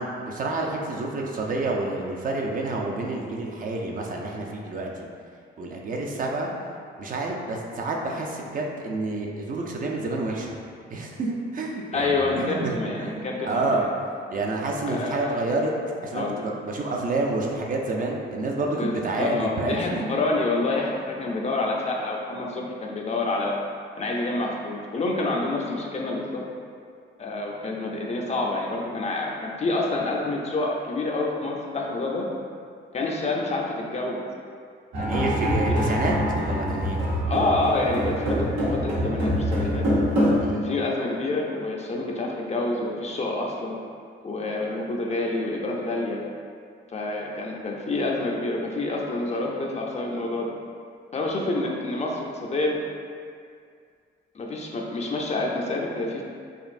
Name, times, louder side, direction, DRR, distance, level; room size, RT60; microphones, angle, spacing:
voice 1, 0.0-5.1 5.6-6.5 7.0-10.6 10.9-13.9 14.3-20.1 35.0-36.1 36.4-37.0 40.4-40.7, right 2 dB, 45° right, 0 dB, 0.5 m, -29 dB
voice 2, 11.9-13.9 14.9-15.3 16.1-16.4 18.8-23.6 24.0-26.4 27.2-32.3 32.9-34.2 35.7-36.0 37.2-39.9 40.6-43.8 44.2-46.2 46.9-50.5 51.1-52.8 54.3-56.2, left 2 dB, 35° left, -1 dB, 0.5 m, -28 dB
sound 1, 34.9-40.4, equal, 85° right, 1.0 m, -24 dB
5.1 x 2.5 x 2.5 m, 2.2 s
cardioid pair, 90°, 20 cm